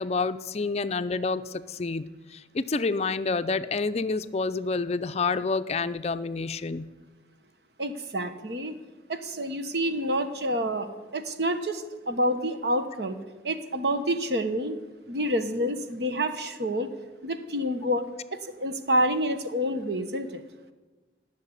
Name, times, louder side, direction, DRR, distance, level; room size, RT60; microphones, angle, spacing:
voice 1, 0.0-6.9, left 4 dB, 35° left, 12 dB, 0.5 m, -28 dB
voice 2, 7.8-8.7 9.1-13.2 13.4-14.8 15.1-16.9 17.2-18.0 18.3-20.4, equal, 65° right, 8 dB, 1.2 m, -28 dB
15.5 x 6.6 x 9.8 m, 1.3 s
head